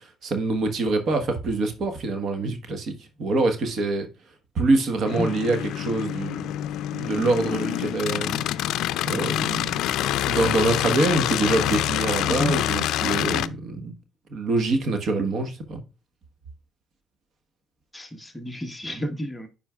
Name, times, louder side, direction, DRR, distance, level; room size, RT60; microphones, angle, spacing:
voice 1, 0.2-4.1 4.5-6.5 6.9-8.4 9.0-9.9 10.3-13.9 14.3-15.8, right 2 dB, 55° right, 1.3 m, -25 dB
sound 1, 5.0-13.5, left 12 dB, 85° left, 0.4 m, -26 dB
voice 2, 17.9-19.5, equal, 10° left, 1.0 m, -30 dB
10.5 x 4.4 x 2.3 m
cardioid pair, 130°, 0 cm